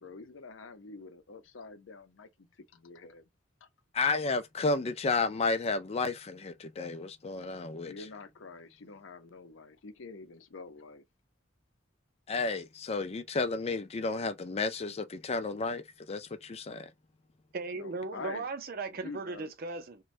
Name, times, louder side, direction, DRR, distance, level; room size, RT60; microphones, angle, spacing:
voice 1, 0.0-3.2 3.6-3.7 7.8-11.0 17.7-18.5 18.9-19.5, left 4 dB, 75° left, 0.6 m, -47 dB
voice 2, 3.9-7.9 12.3-16.9, left 3 dB, 35° left, 0.4 m, -32 dB
voice 3, 17.5-20.0, right 3 dB, 50° right, 0.6 m, -37 dB
2.6 x 2.2 x 3.1 m
head